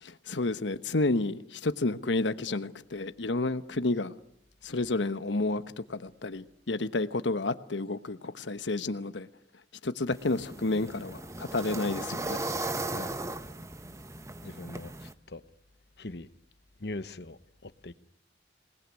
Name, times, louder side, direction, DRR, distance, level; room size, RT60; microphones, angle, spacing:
voice 1, 0.0-4.1 4.6-5.6 5.9-9.3 9.8-12.4, left 2 dB, 90° left, 1.1 m, -30 dB
sound 1, 10.1-15.1, right 2 dB, 15° right, 1.0 m, -37 dB
voice 2, 12.8-13.2 14.4-15.4 16.0-16.3 16.8-17.9, left 2 dB, 65° left, 1.1 m, -41 dB
27.0 x 20.0 x 9.6 m
head